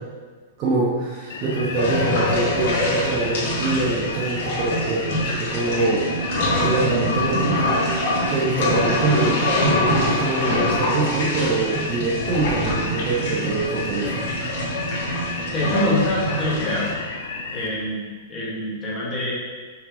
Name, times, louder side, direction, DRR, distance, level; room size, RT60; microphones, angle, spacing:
voice 1, 0.6-7.7 8.3-14.1, right 3 dB, 25° right, -4 dB, 0.7 m, -24 dB
sound 1, 1.3-17.7, left 4 dB, 75° left, 0.8 m, -33 dB
sound 2, 1.8-16.9, left 1 dB, 50° left, 1.8 m, -25 dB
sound 3, 5.8-9.3 10.4-15.9, right 5 dB, 80° right, 0.5 m, -35 dB
voice 2, 15.5-16.9 17.5-18.0 18.3-19.3, equal, 15° left, -7 dB, 1.4 m, -25 dB
5.8 x 4.9 x 3.8 m, 1.5 s
supercardioid pair, 180°, 0 cm